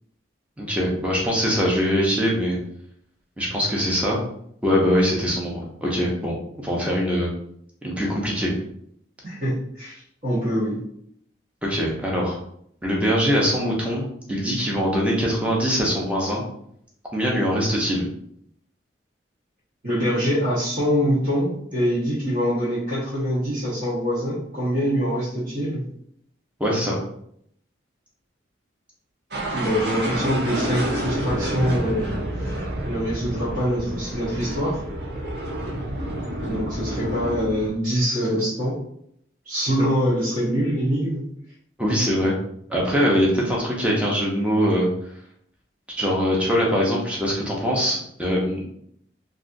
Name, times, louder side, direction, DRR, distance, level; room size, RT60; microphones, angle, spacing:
voice 1, 0.6-2.6 3.4-4.2 4.6-7.3 7.8-8.5 11.6-12.4 12.8-16.4 17.1-18.1 26.6-26.9 41.8-42.4 42.7-44.9 46.0-48.6, equal, 5° right, -3 dB, 0.7 m, -22 dB
voice 2, 9.2-10.8 19.8-25.8 29.4-32.1 32.4-32.5 32.8-34.8 36.4-38.8 39.4-41.2, equal, 40° right, -10 dB, 1.0 m, -24 dB
sound 1, 29.3-37.7, right 1 dB, 60° right, 0.7 m, -29 dB
3.3 x 2.4 x 2.6 m, 0.70 s
head